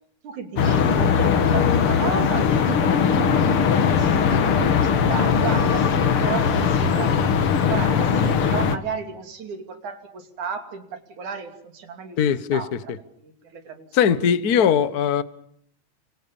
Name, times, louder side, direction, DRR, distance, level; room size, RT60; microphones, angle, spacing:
voice 1, 0.2-7.4 7.7-12.9 13.2-14.2, right 6 dB, 70° right, 4.2 m, -34 dB
sound 1, 0.6-8.8, left 6 dB, 50° left, 2.1 m, -20 dB
voice 2, 12.2-12.6 13.9-15.2, left 8 dB, 85° left, 0.8 m, -19 dB
29.5 x 25.5 x 7.2 m
omnidirectional pair, 3.6 m